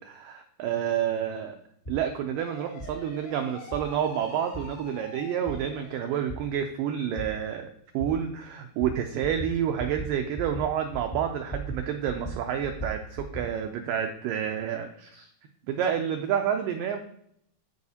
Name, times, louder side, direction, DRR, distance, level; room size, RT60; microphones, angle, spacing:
voice 1, 0.0-1.6 1.9-15.3 15.7-17.0, right 9 dB, 90° right, 5 dB, 1.9 m, -29 dB
sound 1, 1.8-2.0 2.8-2.9 3.7-3.8 4.5-4.6 5.5-5.6 6.3-6.4 7.2-7.3 8.0-8.1 8.8-8.9 9.2-9.5 9.8-10.1 10.3-10.6 10.9-11.8 12.1-13.5, right 2 dB, 65° left, 0.5 m, -36 dB
sound 2, 2.4-6.4, left 5 dB, 80° left, 4.5 m, -46 dB
14.0 x 4.8 x 2.8 m, 0.71 s
omnidirectional pair, 4.6 m